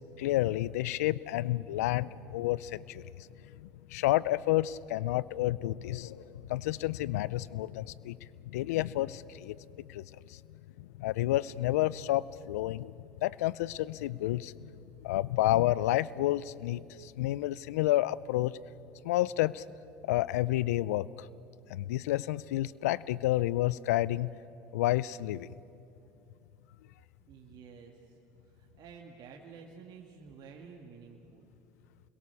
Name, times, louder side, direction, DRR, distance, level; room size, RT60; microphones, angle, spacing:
voice 1, 0.2-9.6 9.9-10.4 10.8-12.9 13.2-14.7 15.0-18.5 19.0-19.6 20.0-21.3 21.7-24.3 24.7-25.5, left 15 dB, 85° left, 21 dB, 0.5 m, -30 dB
voice 2, 27.3-28.2 28.5-31.5, right 6 dB, 60° right, 1 dB, 2.0 m, -51 dB
29.0 x 22.0 x 7.0 m, 2.7 s
hypercardioid pair, 75°, 8 cm